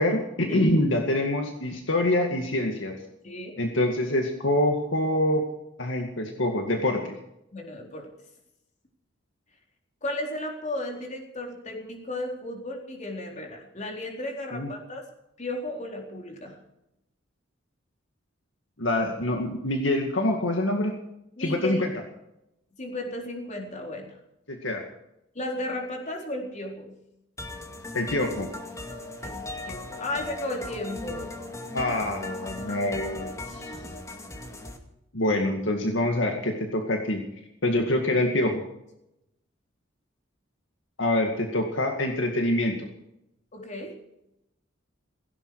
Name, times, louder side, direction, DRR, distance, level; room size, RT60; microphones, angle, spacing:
voice 1, 0.0-2.9 3.6-5.4 5.8-7.0 14.5-14.7 18.8-20.9 21.4-21.9 24.5-24.8 27.9-28.5 31.7-33.3 35.1-37.2 37.6-38.6 41.0-42.9, left 1 dB, 70° left, 3 dB, 2.1 m, -25 dB
voice 2, 7.5-8.1 10.0-15.1 15.4-16.6 21.4-21.9 22.8-24.2 25.3-26.9 29.2-31.3 32.7-32.8 33.5-33.8 43.5-44.0, left 1 dB, 40° left, 1 dB, 4.1 m, -34 dB
sound 1, 27.4-34.8, left 2 dB, 15° left, 2.1 m, -38 dB
17.0 x 16.5 x 4.9 m, 0.84 s
head